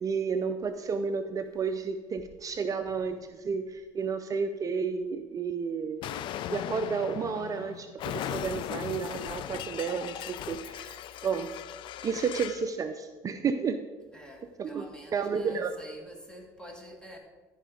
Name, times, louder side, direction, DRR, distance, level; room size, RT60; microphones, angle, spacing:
voice 1, 0.0-6.1 6.5-11.5 12.0-13.8 14.6-14.8 15.1-15.7, right 5 dB, 35° right, 8 dB, 0.5 m, -31 dB
Explosion, 6.0-12.7, left 11 dB, 60° left, 0.5 m, -38 dB
voice 2, 14.1-17.2, equal, 10° left, 2 dB, 2.2 m, -47 dB
14.0 x 4.8 x 5.0 m, 1.3 s
supercardioid pair, 80°, 10 cm